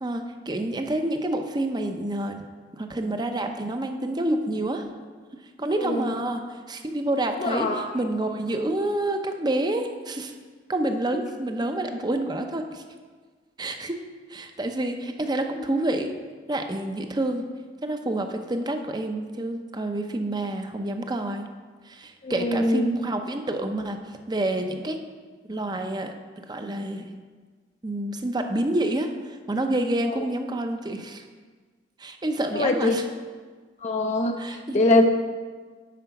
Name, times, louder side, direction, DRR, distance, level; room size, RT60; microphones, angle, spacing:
voice 1, 0.0-2.4 2.8-4.9 5.6-10.3 10.7-12.8 13.6-14.0 14.3-16.1 16.5-17.4 17.8-21.5 21.9-24.0 24.3-25.0 25.5-26.1 26.5-27.1 27.8-31.3 32.0-33.1 34.4-34.8, right 1 dB, 25° right, 6 dB, 0.6 m, -28 dB
voice 2, 7.4-7.9 22.2-22.9 30.2-30.3 32.5-33.0 33.8-34.4 34.7-35.1, left 2 dB, 40° left, 4 dB, 0.5 m, -22 dB
9.3 x 5.0 x 5.8 m, 1.5 s
head